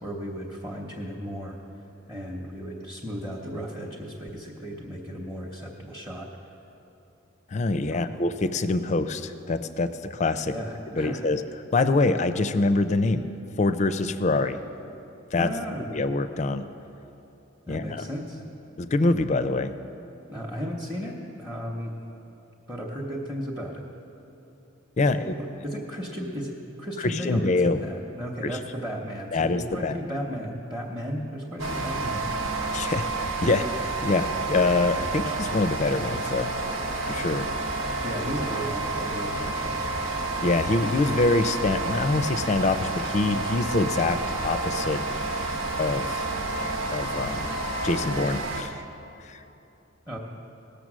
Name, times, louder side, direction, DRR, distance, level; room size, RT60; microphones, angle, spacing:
voice 1, 0.0-1.6 2.1-6.3 7.9-8.2 10.5-11.2 15.4-15.9 17.7-18.4 20.3-21.9 22.7-23.8 25.0-25.2 25.6-32.3 38.0-39.8 50.1-50.2, equal, 10° right, -2 dB, 0.9 m, -34 dB
voice 2, 7.5-10.5 11.0-11.4 11.7-13.2 13.6-14.6 15.3-15.5 15.9-16.7 17.7-18.0 18.8-19.7 25.0-25.3 27.0-27.8 28.4-28.6 29.3-30.0 32.7-36.5 37.0-37.5 40.4-45.5 45.8-46.3 46.9-47.5 47.8-48.8 49.2-49.4, left 3 dB, 35° left, 11 dB, 0.4 m, -25 dB
sound 1, 31.6-48.6, right 2 dB, 85° right, 1.2 m, -30 dB
18.5 x 6.8 x 6.2 m, 2.9 s
head